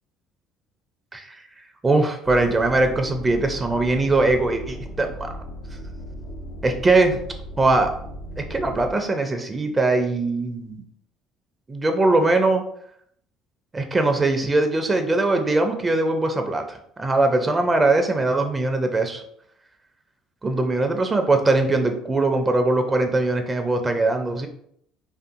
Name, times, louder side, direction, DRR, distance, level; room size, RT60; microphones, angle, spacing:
voice 1, 1.1-1.4 1.8-5.3 6.6-7.2 7.6-7.9 8.4-10.8 11.7-12.6 13.7-19.2 20.4-24.5, right 2 dB, 25° right, 5 dB, 0.4 m, -21 dB
sound 1, 2.2-8.9, equal, 75° left, 0.3 m, -36 dB
2.6 x 2.4 x 2.4 m, 0.69 s
hypercardioid pair, 65°, 0 cm